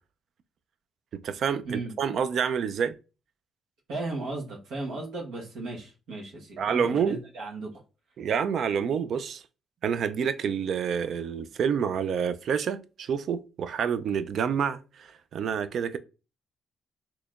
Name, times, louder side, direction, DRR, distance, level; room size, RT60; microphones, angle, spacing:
voice 1, 1.1-2.9 6.6-7.2 8.2-9.4 9.8-16.0, right 7 dB, 65° right, 0.4 m, -28 dB
voice 2, 3.9-7.7, right 2 dB, 80° right, 1.2 m, -36 dB
4.2 x 2.9 x 2.4 m
cardioid pair, 90°, 0 cm